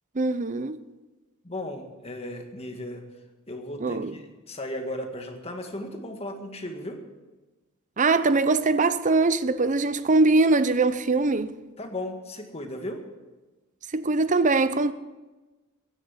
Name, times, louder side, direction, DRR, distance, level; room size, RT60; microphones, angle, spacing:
voice 1, 0.1-0.8 3.8-4.1 8.0-11.5 13.9-14.9, right 3 dB, 35° right, 0.7 m, -22 dB
voice 2, 1.4-3.0 3.5-7.0 11.8-13.0, left 1 dB, 30° left, 1.9 m, -36 dB
16.0 x 10.5 x 7.3 m
head